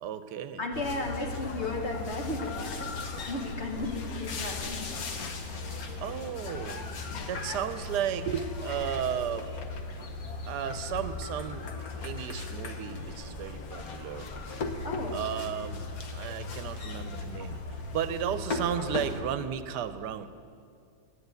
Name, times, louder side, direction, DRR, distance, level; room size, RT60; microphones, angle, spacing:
voice 1, 0.0-0.6 6.0-9.6 10.5-11.7 12.0-14.3 15.1-17.6 17.9-20.3, right 9 dB, 80° right, 11 dB, 1.2 m, -34 dB
voice 2, 0.6-3.0 3.3-5.3 14.8-15.2, left 2 dB, 45° left, 1 dB, 1.5 m, -35 dB
sound 1, 0.7-19.2, left 3 dB, 60° left, 1.4 m, -37 dB
10.5 x 10.5 x 8.1 m, 2.3 s
omnidirectional pair, 1.8 m